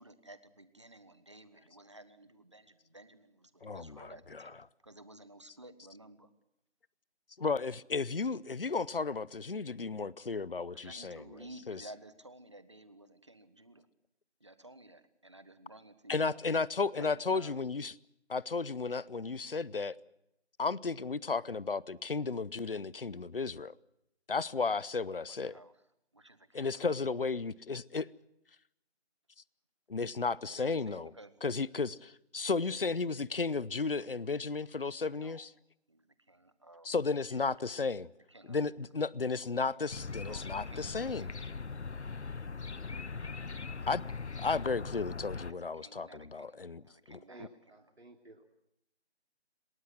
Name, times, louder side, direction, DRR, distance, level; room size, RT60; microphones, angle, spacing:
voice 1, 0.0-6.3 10.7-13.9 14.4-16.4 16.9-17.6 25.1-25.8 26.1-26.8 30.5-31.4 35.2-35.5 35.9-36.9 37.3-37.7 38.3-38.9 40.2-41.5 45.5-47.9, right 1 dB, 25° right, 1.2 m, -54 dB
voice 2, 3.6-4.1 7.4-11.2 11.7-11.8 16.1-17.9 18.3-20.0 20.6-23.7 24.3-25.5 26.5-28.1 29.9-31.1 31.4-35.5 36.8-38.1 38.5-41.3 43.4-43.5 43.9-44.0 44.4-46.8 47.1-47.5, left 4 dB, 55° left, 0.8 m, -34 dB
sound 1, 39.9-45.5, left 4 dB, 85° left, 1.0 m, -40 dB
voice 3, 47.3-48.5, right 1 dB, 70° right, 2.9 m, -55 dB
27.0 x 18.5 x 7.6 m
figure-of-eight pair, 175°, 33 cm